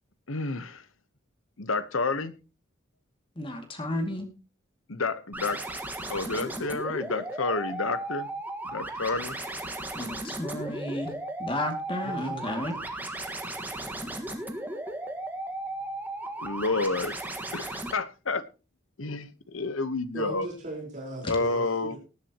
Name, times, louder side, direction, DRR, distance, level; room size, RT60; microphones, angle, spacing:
voice 1, 0.3-0.9 1.6-2.3 4.9-5.6 6.1-8.3 8.6-9.4 16.4-17.1 17.5-18.5 19.0-20.5 21.3-22.0, left 3 dB, 90° left, 1.1 m, -30 dB
voice 2, 3.4-4.3 10.0-11.1 11.4-12.7, left 1 dB, 25° left, 2.3 m, -32 dB
sound 1, 5.3-17.9, right 1 dB, 10° right, 1.6 m, -35 dB
voice 3, 12.0-12.9 20.1-22.0, right 1 dB, 40° right, 4.4 m, -39 dB
18.5 x 10.5 x 3.0 m
head